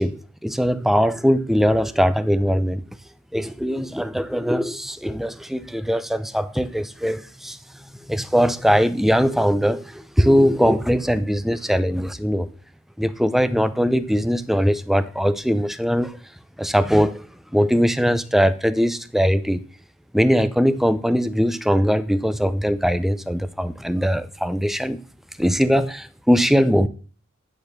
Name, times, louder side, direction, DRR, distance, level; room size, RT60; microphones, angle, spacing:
voice 1, 0.0-2.8 3.3-7.6 7.9-12.5 13.0-16.2 16.6-17.3 17.5-19.6 20.1-25.0 25.4-26.9, equal, ahead, 0.5 m, -20 dB
10.5 x 4.2 x 6.6 m
head